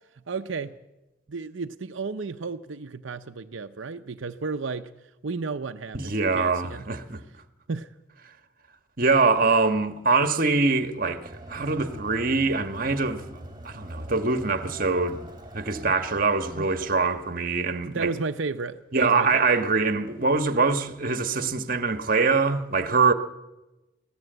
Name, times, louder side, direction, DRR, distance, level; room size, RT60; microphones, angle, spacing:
voice 1, 0.2-0.7 1.3-4.9 5.2-6.9 7.7-7.9 16.5-16.7 17.8-19.4, right 4 dB, 80° right, 0.7 m, -33 dB
voice 2, 5.9-7.2 9.0-13.3 13.6-15.2 15.5-18.1 18.9-23.1, right 4 dB, 45° right, 1.4 m, -23 dB
Crowd, 11.1-17.4, right 1 dB, 25° right, 3.1 m, -44 dB
25.0 x 16.0 x 8.0 m
head